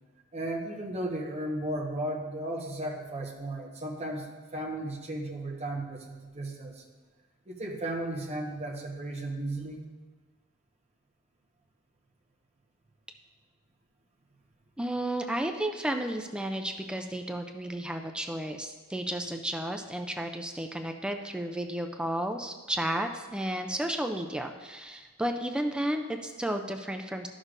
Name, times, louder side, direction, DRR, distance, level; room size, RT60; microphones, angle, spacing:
voice 1, 0.3-6.8 7.5-9.8, right 1 dB, 30° right, 0 dB, 1.0 m, -35 dB
voice 2, 14.8-27.3, right 1 dB, 5° right, 5 dB, 0.3 m, -32 dB
12.5 x 6.3 x 2.5 m, 1.3 s
head